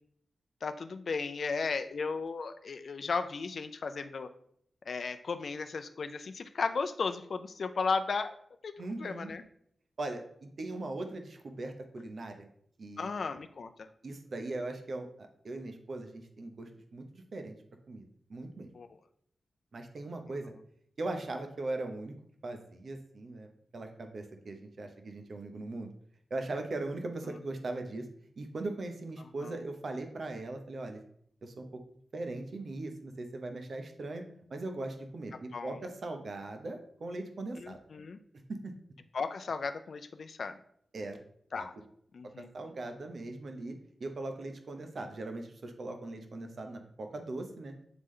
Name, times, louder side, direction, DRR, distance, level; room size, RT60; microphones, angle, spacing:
voice 1, 0.6-4.3 4.9-8.3 8.6-8.7 9.0-9.4 13.0-13.9 18.7-18.9 29.4-29.6 35.5-35.8 37.6-38.2 39.1-40.6 41.5-41.7 42.1-42.5, left 4 dB, 70° left, 9 dB, 0.4 m, -35 dB
voice 2, 8.8-9.3 10.0-12.5 12.8-13.1 14.0-17.6 17.9-18.0 18.3-18.7 19.7-20.5 21.0-22.1 22.4-25.9 26.3-28.1 28.4-31.0 31.4-31.8 32.1-34.2 34.5-37.8 38.5-38.7 40.9-41.2 41.5-41.7 42.4-43.7 44.0-47.7, right 2 dB, 65° right, 5 dB, 0.9 m, -39 dB
8.1 x 3.7 x 3.2 m, 0.66 s
cardioid pair, 60°, 0 cm